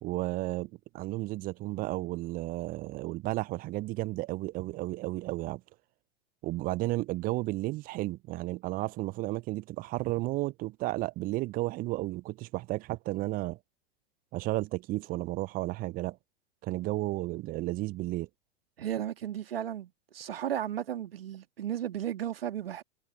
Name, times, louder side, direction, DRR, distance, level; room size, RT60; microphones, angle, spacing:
voice 1, 0.0-5.6 6.4-13.6 14.3-16.2 16.6-18.3, right 19 dB, 30° right, 0.6 m, -33 dB
voice 2, 18.8-22.8, right 10 dB, 70° right, 2.0 m, -34 dB
figure-of-eight pair, 95°, 30 cm